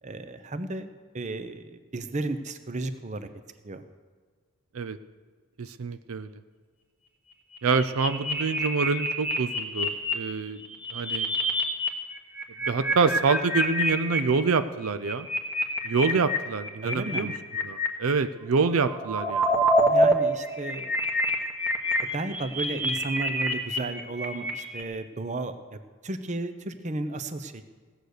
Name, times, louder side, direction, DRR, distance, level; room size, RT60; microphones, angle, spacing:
voice 1, 0.0-3.3 3.6-3.8 16.8-17.3 19.8-21.0 22.1-27.6, right 2 dB, 35° right, 10 dB, 0.7 m, -34 dB
voice 2, 5.6-6.3 7.6-10.6 10.9-11.3 12.7-15.3 15.8-17.3 17.6-19.6, right 4 dB, 70° right, 11 dB, 0.5 m, -26 dB
sound 1, 7.5-10.1 10.6-11.9 12.1-14.2 14.8-17.9 18.6-20.1 20.4-24.8, equal, 10° right, 1.1 m, -26 dB
17.0 x 7.9 x 6.6 m, 1.5 s
head